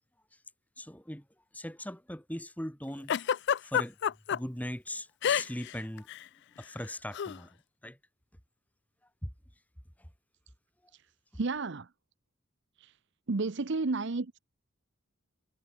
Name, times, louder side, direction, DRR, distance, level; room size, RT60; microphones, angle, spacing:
voice 1, 0.8-1.3 1.5-4.0 4.3-6.1 6.6-8.0 9.2-9.3 10.0-10.1, left 1 dB, 5° left, 5.1 m, -40 dB
Giggle, 3.1-4.4 5.2-5.7 6.0-6.2 7.1-7.4, left 8 dB, 55° left, 0.3 m, -28 dB
voice 2, 11.4-11.9 13.3-14.4, right 3 dB, 55° right, 0.8 m, -31 dB
head